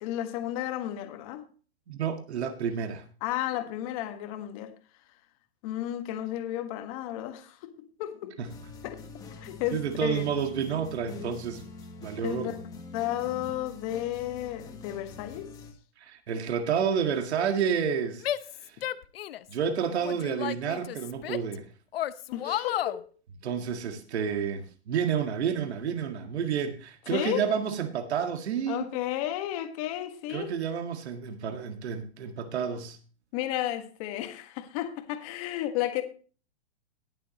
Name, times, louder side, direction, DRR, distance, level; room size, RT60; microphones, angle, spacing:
voice 1, 0.0-1.5 3.2-4.7 5.6-7.7 8.0-8.4 8.8-9.0 9.4-10.2 11.0-11.3 12.2-12.6 12.9-15.5 22.3-23.1 27.1-27.5 28.7-30.5 33.3-36.0, left 13 dB, 35° left, 1.5 m, -33 dB
voice 2, 1.9-3.0 8.4-8.5 9.7-11.6 12.0-12.6 16.0-18.2 18.6-18.8 19.5-21.6 22.4-22.6 23.4-28.9 30.3-33.0, right 7 dB, 80° right, 1.9 m, -30 dB
sound 1, 8.4-15.7, left 3 dB, 10° left, 1.4 m, -45 dB
Female speech woman speaking / Yell, 18.2-19.5 20.0-21.6 21.9-23.0, left 12 dB, 65° left, 0.8 m, -33 dB
19.5 x 7.3 x 3.0 m
hypercardioid pair, 165°, 33 cm